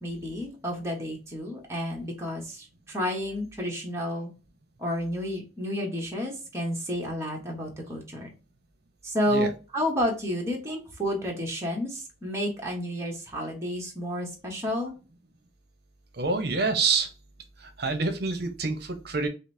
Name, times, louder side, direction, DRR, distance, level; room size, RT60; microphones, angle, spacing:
voice 1, 0.0-4.3 4.8-8.3 9.0-14.9, equal, 15° right, -1 dB, 1.1 m, -31 dB
voice 2, 16.1-17.1 17.6-19.3, right 4 dB, 60° right, 7 dB, 0.8 m, -27 dB
5.2 x 2.0 x 2.7 m, 0.32 s
head